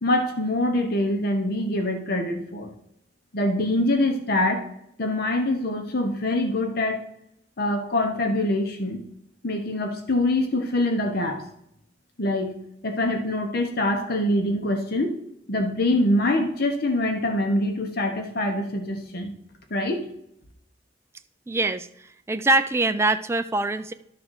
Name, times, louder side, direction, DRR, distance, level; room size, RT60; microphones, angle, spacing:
voice 1, 0.0-2.7 3.3-4.7 5.0-7.0 7.6-9.0 9.4-11.5 12.2-12.6 12.8-15.2 15.5-19.4 19.7-20.1, left 1 dB, 55° left, 5 dB, 1.1 m, -24 dB
voice 2, 21.5-21.9 22.3-23.9, right 2 dB, 15° right, 9 dB, 0.3 m, -23 dB
11.5 x 3.8 x 6.4 m, 0.76 s
head